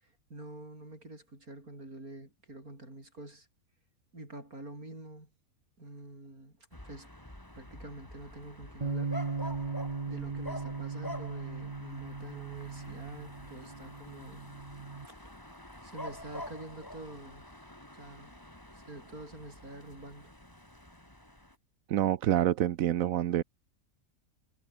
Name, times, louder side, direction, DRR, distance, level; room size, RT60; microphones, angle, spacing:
voice 1, 0.0-3.5 4.1-5.3 5.8-7.3 7.5-9.2 9.4-9.7 10.1-14.5 15.1-15.3 15.8-17.5 17.9-18.4 18.7-20.3, right 2 dB, 90° right, 8.6 m, -47 dB
sound 1, 6.7-21.5, left 1 dB, 15° left, 4.2 m, -47 dB
Bass guitar, 8.8-15.1, right 4 dB, 30° right, 1.3 m, -38 dB
voice 2, 21.9-23.4, right 12 dB, 75° right, 1.1 m, -27 dB
omnidirectional pair, 1.5 m